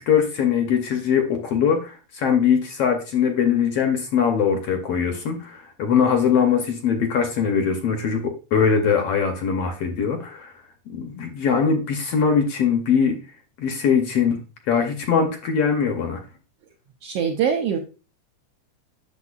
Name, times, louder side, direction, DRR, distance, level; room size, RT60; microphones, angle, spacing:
voice 1, 0.0-10.5 10.9-13.2 13.6-16.2, left 7 dB, 70° left, 5 dB, 1.5 m, -21 dB
voice 2, 17.0-17.8, right 7 dB, 75° right, 3 dB, 1.4 m, -23 dB
8.2 x 6.8 x 2.4 m, 0.33 s
omnidirectional pair, 3.5 m